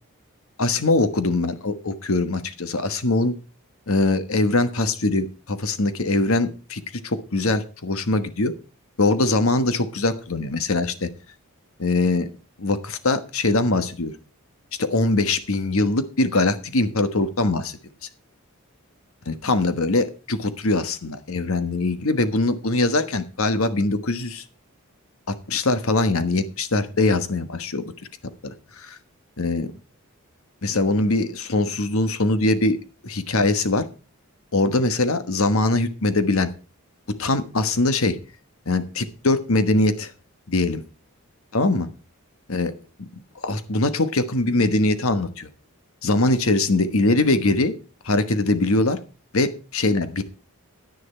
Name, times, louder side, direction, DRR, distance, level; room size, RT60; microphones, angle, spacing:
voice 1, 0.6-3.3 3.9-8.5 9.0-11.1 11.8-12.3 12.6-14.1 14.8-17.8 19.3-24.4 25.3-27.9 28.4-29.0 29.4-29.7 30.6-32.8 33.0-33.8 34.5-36.5 37.1-38.2 38.7-40.1 40.5-40.8 41.5-41.9 42.5-42.7 43.0-43.1 43.4-45.5 46.0-47.7 48.0-49.0 49.3-50.2, left 2 dB, 70° left, 11 dB, 1.2 m, -22 dB
10.5 x 10.0 x 4.3 m, 0.34 s
head